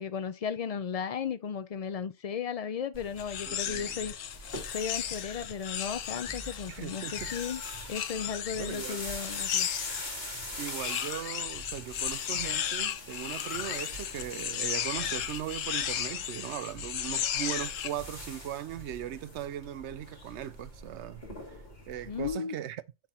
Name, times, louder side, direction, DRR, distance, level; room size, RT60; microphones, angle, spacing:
voice 1, 0.0-4.2 4.7-7.6 7.9-9.7 22.1-22.6, left 7 dB, 70° left, 0.3 m, -35 dB
sound 1, 2.9-22.3, left 1 dB, 50° left, 3.1 m, -44 dB
sound 2, 3.2-10.1 10.7-17.9, left 10 dB, 90° left, 1.1 m, -35 dB
voice 2, 3.5-4.0 6.7-7.3 8.6-9.0 10.6-21.2 21.9-22.8, right 11 dB, 70° right, 0.8 m, -38 dB
sound 3, 6.2-8.3, equal, 5° left, 0.9 m, -50 dB
7.5 x 3.5 x 4.4 m
omnidirectional pair, 1.3 m